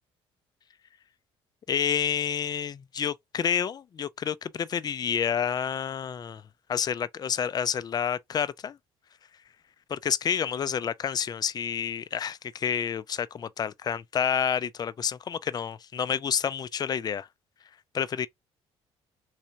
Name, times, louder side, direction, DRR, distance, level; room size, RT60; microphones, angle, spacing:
voice 1, 1.7-6.4 6.7-8.8 9.9-17.3 17.9-18.3, left 8 dB, 35° left, 0.4 m, -29 dB
3.3 x 3.1 x 2.6 m
cardioid pair, 90°, 12 cm